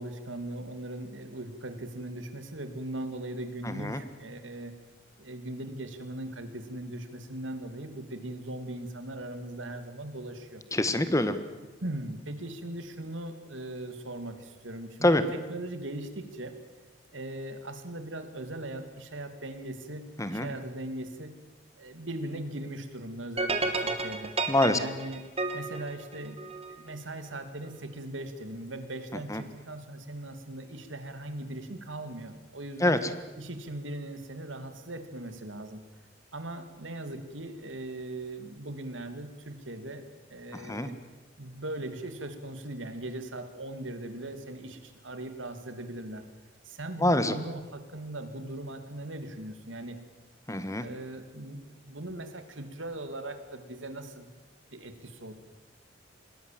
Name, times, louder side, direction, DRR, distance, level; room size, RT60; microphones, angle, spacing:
voice 1, 0.0-4.8 5.2-10.6 11.8-16.5 17.1-21.4 21.7-24.3 24.7-33.0 33.4-35.8 36.3-41.0 41.4-46.2 46.6-50.0 50.8-54.3 54.7-55.3, right 1 dB, 90° right, 8 dB, 2.7 m, -39 dB
voice 2, 10.7-11.4 15.0-15.2 20.2-20.5 24.5-24.8 29.3-29.4 32.8-33.0 40.7-40.9 47.0-47.3 50.5-50.9, left 1 dB, 15° left, 11 dB, 1.5 m, -25 dB
sound 1, 23.4-26.7, right 3 dB, 35° right, 2.6 m, -31 dB
26.5 x 20.5 x 7.7 m, 1.2 s
head